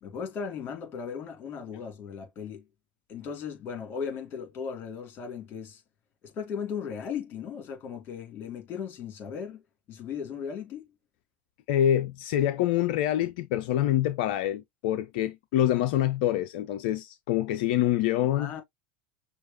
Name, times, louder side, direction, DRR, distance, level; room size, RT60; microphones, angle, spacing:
voice 1, 0.0-2.7 3.1-5.8 6.2-10.9 18.3-18.6, left 7 dB, 35° left, 2.5 m, -37 dB
voice 2, 11.7-18.5, left 12 dB, 60° left, 0.4 m, -26 dB
6.2 x 2.3 x 2.7 m
figure-of-eight pair, 80°, 6 cm